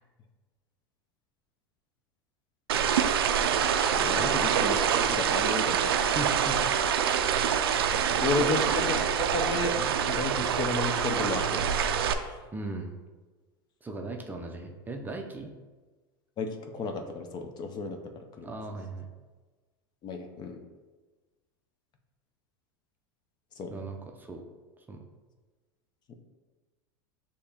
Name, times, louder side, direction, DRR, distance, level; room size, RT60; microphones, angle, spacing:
sound 1, 2.7-12.1, right 8 dB, 85° right, 0.4 m, -26 dB
voice 1, 3.9-5.9 8.2-12.4 16.4-18.5 20.0-20.6 23.6-23.8, left 3 dB, 35° left, 5 dB, 0.5 m, -33 dB
voice 2, 6.1-6.6 8.1-8.6 12.5-13.0 13.8-15.5 18.4-19.1 23.7-24.5 24.8-25.0, right 2 dB, 15° right, 2 dB, 0.5 m, -38 dB
6.4 x 2.9 x 2.8 m, 1.3 s
hypercardioid pair, 100°, 12 cm